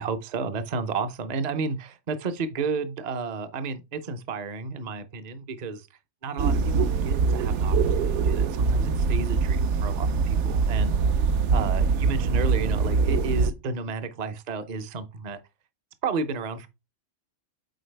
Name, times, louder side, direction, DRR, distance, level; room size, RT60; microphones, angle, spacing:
voice 1, 0.0-5.8 6.2-11.0 11.5-15.4 16.0-16.7, right 4 dB, 40° right, 0.7 m, -32 dB
sound 1, 6.4-13.5, right 5 dB, 70° right, 0.9 m, -23 dB
7.9 x 4.5 x 3.3 m
omnidirectional pair, 1.3 m